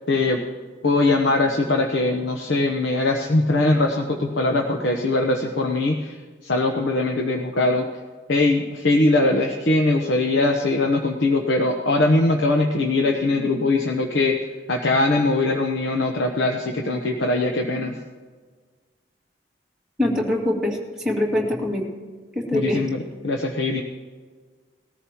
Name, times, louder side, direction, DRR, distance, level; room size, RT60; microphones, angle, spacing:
voice 1, 0.1-0.4 0.8-6.2 6.4-7.9 8.3-14.4 14.7-18.0 22.5-23.8, left 2 dB, 90° left, 2 dB, 1.0 m, -21 dB
voice 2, 20.0-21.9 22.3-22.8, left 1 dB, 5° right, -4 dB, 2.3 m, -23 dB
20.0 x 14.0 x 3.0 m, 1.5 s
head